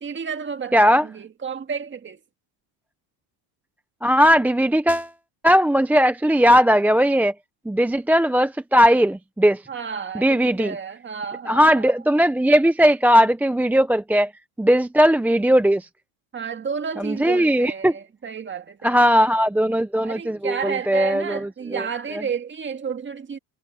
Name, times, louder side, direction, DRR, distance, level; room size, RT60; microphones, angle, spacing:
voice 1, 0.0-2.2 9.7-11.9 16.3-19.3 20.0-23.4, right 6 dB, 25° right, 2.0 m, -31 dB
voice 2, 0.7-1.1 4.0-5.1 5.4-7.3 7.7-9.6 10.1-10.8 11.5-14.3 14.6-15.9 17.0-17.9 18.8-21.8, equal, 5° right, 0.6 m, -18 dB
cardioid pair, 130°, 44 cm